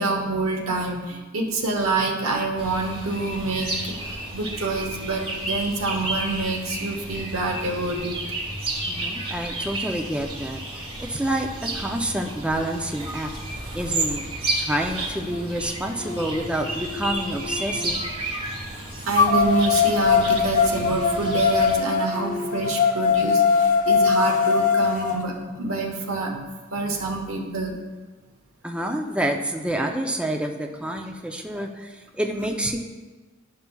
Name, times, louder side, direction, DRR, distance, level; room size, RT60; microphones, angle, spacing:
voice 1, 0.0-3.9 4.3-8.2 18.7-26.4 26.7-27.7, right 3 dB, 90° right, 1 dB, 1.1 m, -27 dB
sound 1, 2.6-21.8, right 2 dB, 25° right, 1.2 m, -32 dB
voice 2, 8.8-13.3 13.7-14.2 14.5-18.0 28.6-32.8, right 1 dB, 5° right, 2 dB, 0.4 m, -28 dB
sound 2, 15.3-15.4 16.0-17.9 19.1-25.2, left 5 dB, 40° left, 0.7 m, -22 dB
12.0 x 5.7 x 2.3 m, 1.3 s
head